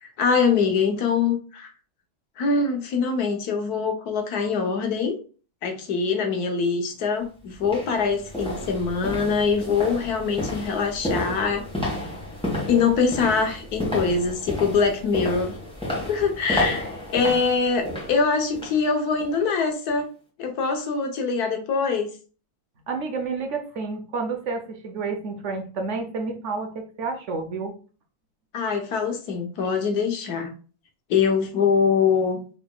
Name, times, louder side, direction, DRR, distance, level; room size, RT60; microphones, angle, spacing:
voice 1, 0.0-1.7 2.4-5.2 5.6-11.6 12.7-15.6 16.1-20.0 20.4-22.1 28.5-30.5 31.1-32.4, left 5 dB, 90° left, 4 dB, 1.5 m, -23 dB
sound 1, 6.9-7.0 7.6-18.8 19.2-19.4 19.9-20.0, left 1 dB, 5° left, 1.4 m, -31 dB
voice 2, 22.9-27.7, right 4 dB, 60° right, 4 dB, 1.0 m, -30 dB
5.2 x 4.1 x 2.3 m, 0.37 s
omnidirectional pair, 1.6 m